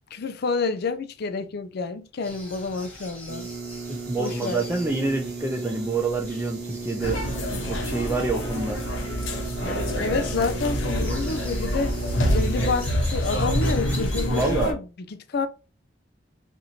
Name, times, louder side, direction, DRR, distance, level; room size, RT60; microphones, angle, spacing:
voice 1, 0.1-3.5 4.2-4.6 10.0-11.9 12.3-14.8 15.3-15.5, left 4 dB, 55° left, 0.4 m, -28 dB
sound 1, 2.2-14.4, left 1 dB, 5° left, 1.1 m, -43 dB
sound 2, 3.3-12.9, right 4 dB, 60° right, 0.8 m, -36 dB
voice 2, 3.9-7.3 7.6-8.8 9.6-10.2 14.3-14.8, right 3 dB, 10° right, 0.5 m, -27 dB
sound 3, 7.0-14.7, equal, 80° left, 0.9 m, -27 dB
2.7 x 2.6 x 4.3 m
head